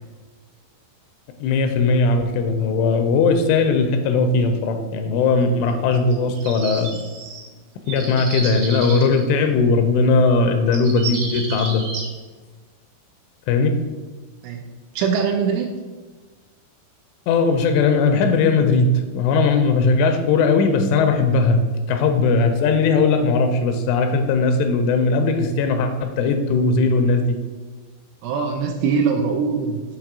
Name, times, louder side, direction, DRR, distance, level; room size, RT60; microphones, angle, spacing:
voice 1, 1.4-6.9 7.9-11.8 13.5-13.7 17.3-18.9 19.1-21.6 21.9-27.4, left 4 dB, 85° left, 6 dB, 3.0 m, -18 dB
sound 1, 5.9-7.5 7.9-9.2 10.4-10.5 10.7-12.1, right 3 dB, 70° right, 2.2 m, -31 dB
voice 2, 15.0-15.7 28.2-29.8, right 5 dB, 85° right, 2 dB, 2.7 m, -22 dB
7.4 x 3.0 x 6.0 m, 1.3 s
omnidirectional pair, 5.6 m